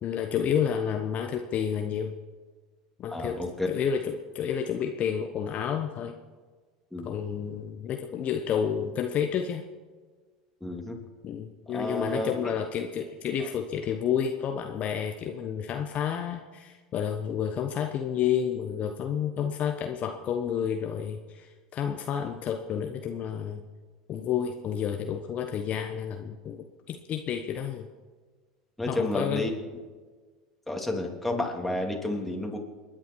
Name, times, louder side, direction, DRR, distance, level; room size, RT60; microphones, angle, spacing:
voice 1, 0.0-2.1 3.0-6.1 7.0-9.6 11.2-23.6 24.1-27.9 28.9-29.5, left 8 dB, 45° left, 5 dB, 1.1 m, -30 dB
voice 2, 3.1-3.7 6.9-7.1 10.6-11.0 11.7-12.5 13.4-13.5 28.8-29.5 30.7-32.6, left 1 dB, 5° left, 0 dB, 3.3 m, -31 dB
29.0 x 10.5 x 4.7 m, 1.4 s
hypercardioid pair, 85°, 3 cm